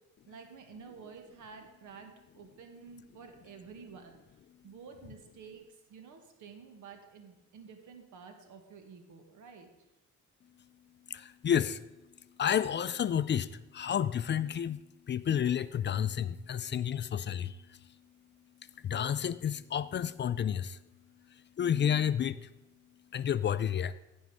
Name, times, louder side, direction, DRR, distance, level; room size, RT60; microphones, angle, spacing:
voice 1, 0.3-4.2 4.6-9.7, right 5 dB, 80° right, 5 dB, 1.7 m, -51 dB
voice 2, 11.1-11.8 12.4-18.0 18.8-20.8 21.3-22.5 23.1-23.9, left 9 dB, 40° left, 15 dB, 0.4 m, -31 dB
15.5 x 5.4 x 4.9 m, 0.98 s
cardioid pair, 90°, 30 cm